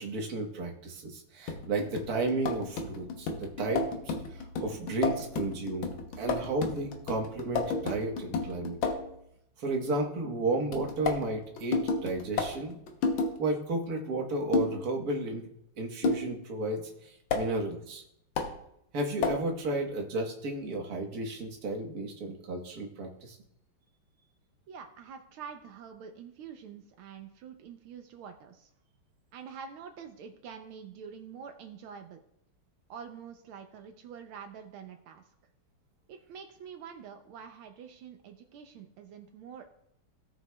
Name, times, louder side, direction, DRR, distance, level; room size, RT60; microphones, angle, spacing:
voice 1, 0.0-5.9 6.2-8.7 9.6-12.8 13.4-15.4 15.8-18.0 18.9-23.4, right 2 dB, 50° right, 1 dB, 1.6 m, -33 dB
sound 1, 1.5-9.1 10.7-13.3 14.5-14.8 16.0-16.3 17.3-17.5 18.4-18.5 19.2-19.5, left 4 dB, 70° left, 1.7 m, -32 dB
voice 2, 24.7-28.7 29.3-32.2 32.9-35.3 36.1-39.7, right 7 dB, 80° right, 6 dB, 1.5 m, -46 dB
17.0 x 6.3 x 2.3 m, 0.76 s
omnidirectional pair, 2.4 m